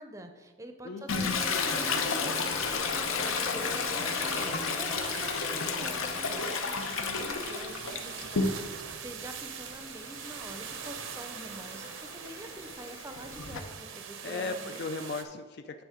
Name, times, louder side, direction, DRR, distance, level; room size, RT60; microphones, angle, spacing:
voice 1, 0.0-14.8, right 1 dB, 15° right, 7 dB, 0.5 m, -46 dB
voice 2, 0.8-1.3 14.2-15.8, left 3 dB, 50° left, 7 dB, 0.3 m, -37 dB
Toilet flush, 1.1-8.9 9.3-13.6, left 4 dB, 85° left, 0.8 m, -32 dB
sound 1, 1.2-15.2, right 7 dB, 70° right, 0.6 m, -44 dB
9.2 x 3.9 x 5.0 m, 1.5 s
head